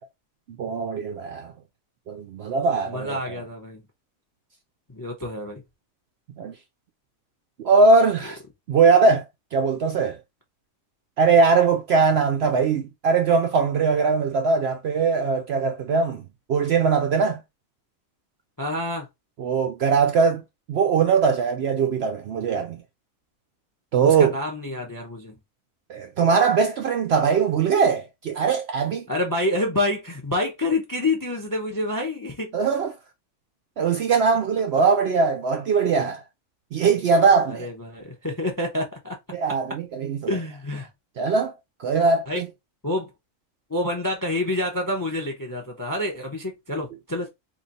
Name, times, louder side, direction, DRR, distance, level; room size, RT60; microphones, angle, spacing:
voice 1, 0.6-1.5 2.1-3.4 6.4-6.5 7.6-8.4 8.7-9.2 9.5-10.2 11.2-17.4 19.4-20.4 20.7-22.8 23.9-24.4 25.9-29.1 32.5-33.0 33.8-36.2 36.7-37.7 39.3-40.3 41.2-42.5, right 5 dB, 65° right, 0.6 m, -21 dB
voice 2, 2.9-3.8 4.9-5.6 18.6-19.1 24.0-25.4 29.1-32.6 37.5-39.2 40.3-40.9 42.3-42.4 42.8-43.1 43.7-47.3, left 1 dB, 25° left, 0.4 m, -27 dB
3.0 x 2.4 x 4.0 m
omnidirectional pair, 1.5 m